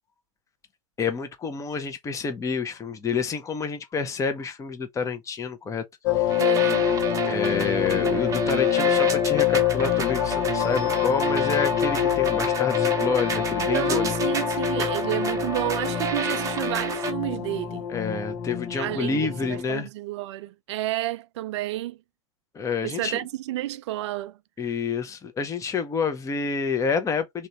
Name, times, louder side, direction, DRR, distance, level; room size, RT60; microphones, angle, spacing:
voice 1, 1.0-5.8 6.1-6.4 7.2-14.3 17.9-19.9 22.5-23.2 24.6-27.5, left 5 dB, 20° left, 1.0 m, -28 dB
sound 1, 6.0-19.6, left 10 dB, 50° left, 1.1 m, -25 dB
sound 2, 6.3-17.1, right 5 dB, 20° right, 0.9 m, -31 dB
voice 2, 6.4-6.9 13.7-17.9 18.7-22.0 22.8-24.4, right 15 dB, 60° right, 0.5 m, -30 dB
3.4 x 2.8 x 4.0 m
hypercardioid pair, 105°, 17 cm